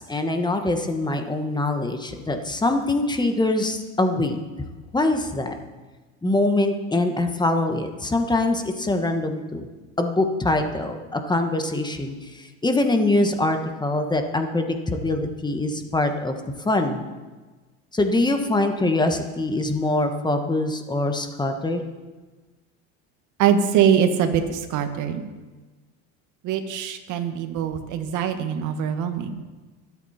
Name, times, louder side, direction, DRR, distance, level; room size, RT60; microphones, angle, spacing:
voice 1, 0.0-4.4 4.9-5.5 6.2-9.7 10.0-16.3 16.6-17.0 17.9-21.8, left 2 dB, 10° left, 5 dB, 1.4 m, -23 dB
voice 2, 23.4-25.3 26.4-29.4, right 8 dB, 60° right, 7 dB, 1.7 m, -23 dB
22.5 x 8.4 x 4.4 m, 1.3 s
supercardioid pair, 105°, 34 cm